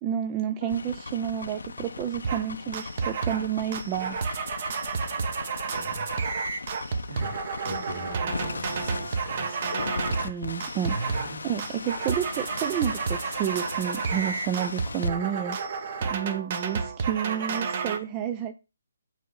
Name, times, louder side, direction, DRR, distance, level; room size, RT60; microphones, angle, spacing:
voice 1, 0.0-4.4 10.2-11.2 11.4-15.6 16.0-18.5, right 9 dB, 25° right, 0.4 m, -30 dB
sound 1, 0.6-15.1, left 4 dB, 75° left, 0.7 m, -38 dB
sound 2, 2.2-2.5 2.7-3.5 3.7-10.3 10.6-11.3 11.6-18.0, right 5 dB, 45° right, 1.1 m, -31 dB
voice 2, 5.7-6.1 7.1-7.4 7.6-9.6 10.0-10.4 10.9-11.4, right 2 dB, 65° right, 2.4 m, -39 dB
7.2 x 3.6 x 5.5 m
hypercardioid pair, 150°, 0 cm